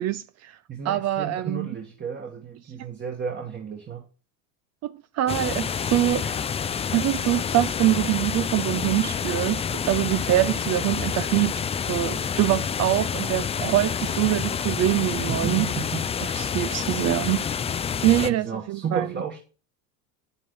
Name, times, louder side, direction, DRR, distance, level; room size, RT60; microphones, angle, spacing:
voice 1, 0.0-0.6 0.8-1.7 4.8-6.4 6.9-15.7 16.2-17.5 18.0-19.1, right 15 dB, 45° right, 0.5 m, -24 dB
voice 2, 0.7-4.1 15.3-16.1 18.2-19.4, right 6 dB, 30° right, 1.5 m, -32 dB
sound 1, 5.3-18.3, left 7 dB, 15° left, 0.4 m, -28 dB
8.8 x 7.3 x 4.7 m
supercardioid pair, 110°, 38 cm